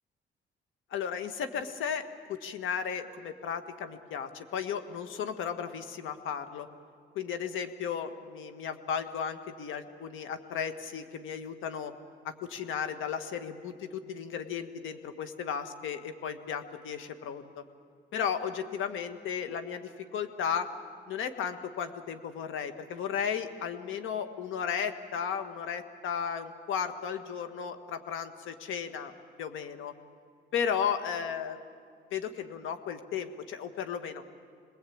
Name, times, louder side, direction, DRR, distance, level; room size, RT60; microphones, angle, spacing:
voice 1, 0.9-2.0 2.3-6.7 7.2-11.9 12.2-17.6 18.1-20.7 21.1-29.1 29.4-29.9 30.5-31.6 32.1-34.2, left 7 dB, 80° left, 9 dB, 1.7 m, -34 dB
27.0 x 20.5 x 8.7 m, 2.2 s
cardioid pair, 90°, 20 cm